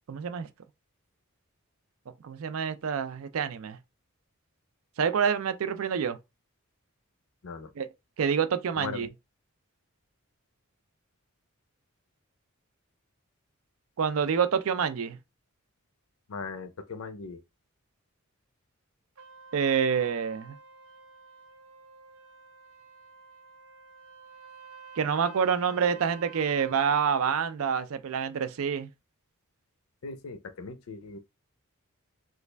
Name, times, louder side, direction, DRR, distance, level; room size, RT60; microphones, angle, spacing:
voice 1, 0.1-0.5 2.2-3.8 5.0-6.2 7.8-7.9 8.2-9.1 14.0-15.2 19.5-20.6 25.0-28.9, right 7 dB, 65° right, 0.4 m, -27 dB
voice 2, 8.7-9.1 16.3-17.4 30.0-31.2, left 4 dB, 70° left, 0.5 m, -39 dB
Trumpet, 19.2-27.0, right 5 dB, 85° right, 0.8 m, -50 dB
3.1 x 2.4 x 3.2 m
head